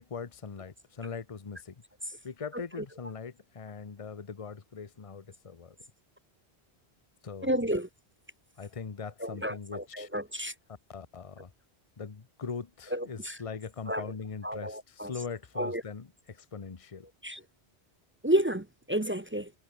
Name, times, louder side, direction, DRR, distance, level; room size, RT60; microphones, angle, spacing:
voice 1, 0.0-1.7 2.2-5.8 7.2-7.6 8.6-10.1 10.9-11.5 12.0-17.1, left 5 dB, 35° left, 1.0 m, -41 dB
voice 2, 7.4-7.9 9.2-10.5 12.9-13.4 13.9-14.1 14.4-15.1 15.6-15.8 17.2-17.4 18.2-19.5, right 1 dB, 15° right, 0.5 m, -31 dB
omnidirectional pair, 1.1 m